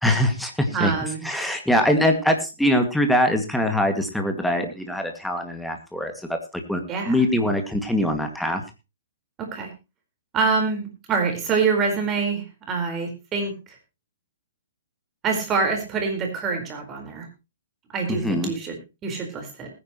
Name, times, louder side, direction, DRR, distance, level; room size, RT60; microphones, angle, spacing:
voice 1, 0.0-0.9 1.2-6.4 6.7-6.8 7.1-8.6 18.1-18.5, left 1 dB, ahead, 5 dB, 2.1 m, -23 dB
voice 2, 0.7-1.2 6.9-7.2 9.4-9.7 10.3-13.8 15.2-17.3 17.9-19.7, right 4 dB, 20° right, 3 dB, 4.5 m, -26 dB
20.0 x 10.0 x 3.1 m, 0.28 s
figure-of-eight pair, 120°, 0 cm